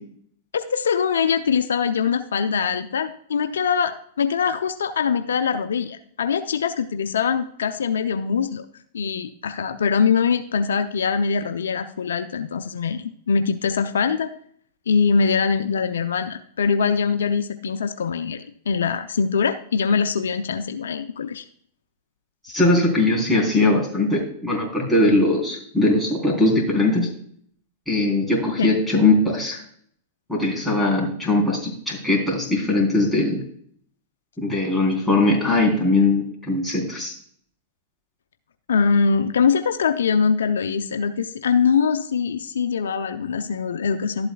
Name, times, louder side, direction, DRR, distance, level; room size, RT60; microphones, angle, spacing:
voice 1, 0.5-8.7 8.9-14.3 14.9-21.4 28.6-28.7 38.7-44.3, left 6 dB, 85° left, 9 dB, 0.5 m, -23 dB
voice 2, 22.4-27.1 27.9-29.6 30.3-33.4 34.4-37.1, left 2 dB, 5° left, -3 dB, 3.7 m, -20 dB
12.0 x 8.0 x 2.3 m, 0.62 s
hypercardioid pair, 115°, 0 cm